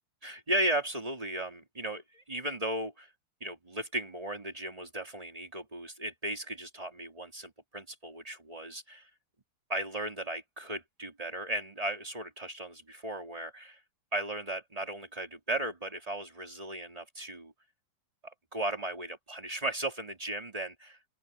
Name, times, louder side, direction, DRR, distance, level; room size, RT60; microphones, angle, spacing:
voice 1, 0.2-3.1 3.4-9.1 9.7-13.8 14.1-17.5 18.5-20.7, right 1 dB, 20° right, 2.9 m, -36 dB
open air
omnidirectional pair, 2.2 m